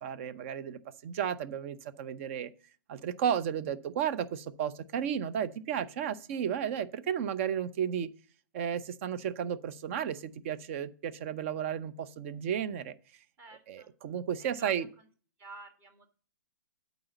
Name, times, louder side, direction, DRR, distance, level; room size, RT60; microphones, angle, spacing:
voice 1, 0.0-2.5 2.9-8.1 8.5-12.9 13.7-14.9, right 8 dB, 40° right, 0.7 m, -33 dB
voice 2, 13.4-13.9 14.4-15.1 15.4-16.1, right 2 dB, 20° right, 1.6 m, -50 dB
8.6 x 4.0 x 7.0 m
figure-of-eight pair, 130°, 11 cm